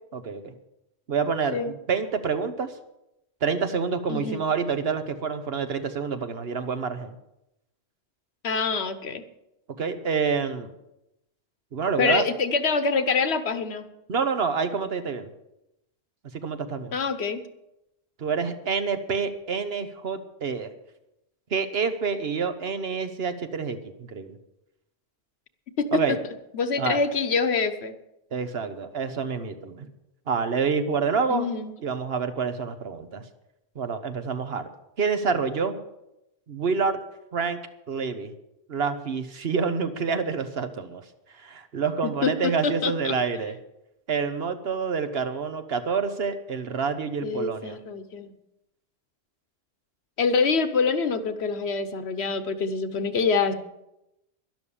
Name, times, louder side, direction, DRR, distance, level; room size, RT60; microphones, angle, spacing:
voice 1, 0.1-0.5 1.1-2.7 3.4-7.1 9.8-10.7 11.7-12.2 14.1-15.3 16.3-16.9 18.2-20.7 21.5-23.8 24.1-24.3 25.9-26.2 26.8-27.0 28.3-29.9 30.3-31.5 31.8-33.2 33.7-34.7 35.0-35.8 36.5-37.0 37.3-37.6 37.9-38.3 38.7-41.0 41.4-43.5 44.1-47.8, right 5 dB, 65° right, 9 dB, 1.3 m, -27 dB
voice 2, 4.1-4.4 8.4-9.2 12.0-13.9 16.9-17.4 25.8-25.9 26.5-27.9 31.3-31.7 42.0-43.1 47.2-48.3 50.2-53.5, left 4 dB, 70° left, 11 dB, 1.3 m, -25 dB
12.0 x 11.5 x 7.1 m, 0.88 s
omnidirectional pair, 1.1 m